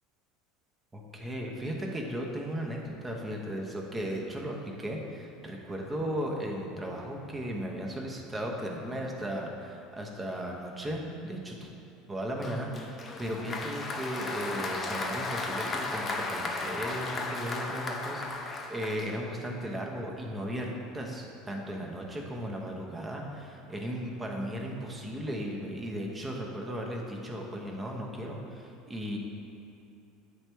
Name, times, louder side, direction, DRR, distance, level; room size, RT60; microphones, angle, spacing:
voice 1, 0.9-11.7 12.1-29.2, equal, 15° right, 0 dB, 0.8 m, -36 dB
Applause, 12.4-19.5, left 3 dB, 25° left, 0.5 m, -35 dB
8.7 x 3.4 x 4.5 m, 2.8 s
supercardioid pair, 140°, 0 cm